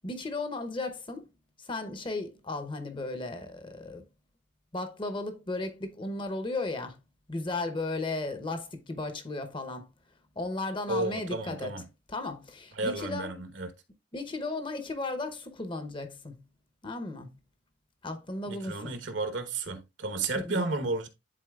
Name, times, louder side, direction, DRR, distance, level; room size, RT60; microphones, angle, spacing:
voice 1, 0.0-1.3 1.6-4.0 4.7-7.0 7.3-9.9 10.4-11.7 12.1-13.3 14.1-16.4 16.8-17.4 18.0-18.9 20.3-20.7, left 2 dB, 25° left, 0.8 m, -35 dB
voice 2, 10.9-11.8 12.7-13.7 18.5-21.1, right 2 dB, 75° right, 1.2 m, -32 dB
11.0 x 4.1 x 2.3 m
head